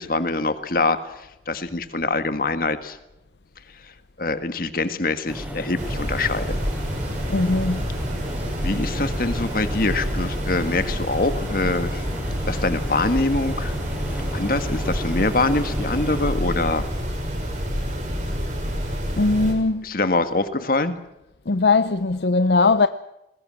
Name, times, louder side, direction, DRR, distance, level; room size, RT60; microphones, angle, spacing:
voice 1, 0.0-3.0 4.2-6.6 8.6-12.0 12.5-13.7 14.3-16.8 19.8-21.0, left 2 dB, 55° left, 1.7 m, -24 dB
sound 1, 5.3-16.3, equal, 10° right, 5.1 m, -33 dB
sound 2, 5.8-19.5, equal, 45° right, 6.4 m, -28 dB
voice 2, 7.3-7.9 19.2-19.8 21.5-22.9, left 3 dB, 70° left, 0.7 m, -19 dB
21.0 x 20.0 x 7.6 m
head